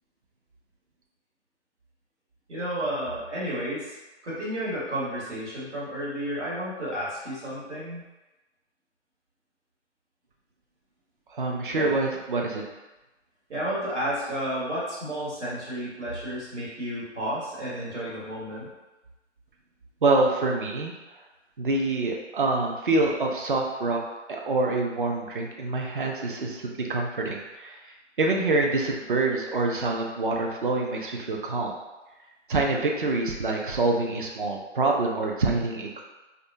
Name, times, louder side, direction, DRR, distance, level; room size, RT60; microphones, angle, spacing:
voice 1, 2.5-3.9 4.2-8.0 11.7-12.0 13.5-18.7, equal, 70° right, -8 dB, 1.4 m, -32 dB
voice 2, 11.3-12.6 20.0-20.9 21.6-24.0 24.3-27.8 28.2-31.7 32.5-36.0, right 3 dB, 45° right, 0 dB, 0.4 m, -26 dB
2.5 x 2.2 x 2.5 m, 1.1 s
figure-of-eight pair, 145°, 36 cm